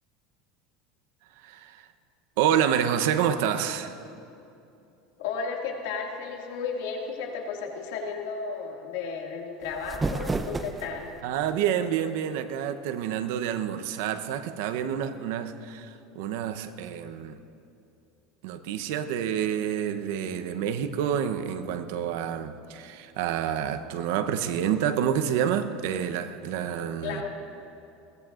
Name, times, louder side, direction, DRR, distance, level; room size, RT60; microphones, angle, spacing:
voice 1, 1.4-1.8 2.4-4.0 11.2-17.4 18.4-27.2, right 9 dB, 70° right, 10 dB, 0.8 m, -28 dB
voice 2, 5.2-11.1 27.0-27.3, left 5 dB, 80° left, 0 dB, 2.1 m, -33 dB
sound 1, 9.6-11.2, right 3 dB, 15° right, 0.5 m, -31 dB
21.0 x 17.0 x 2.5 m, 2.7 s
supercardioid pair, 145°, 0 cm